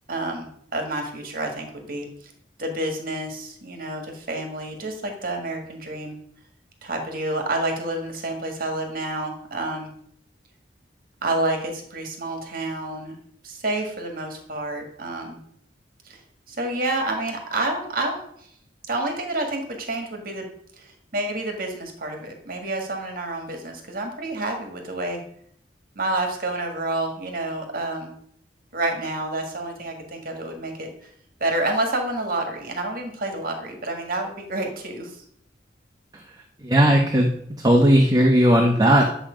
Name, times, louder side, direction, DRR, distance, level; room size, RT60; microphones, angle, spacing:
voice 1, 0.1-2.3 2.6-6.1 6.8-9.9 11.2-13.1 13.4-15.4 16.1-16.2 16.5-18.5 18.9-20.5 20.8-25.2 26.0-28.1 28.7-31.1 31.4-35.2, right 2 dB, 50° right, 3 dB, 1.8 m, -29 dB
voice 2, 36.6-37.3 37.6-39.1, equal, 20° right, 1 dB, 1.1 m, -16 dB
11.5 x 7.4 x 5.1 m, 0.68 s
head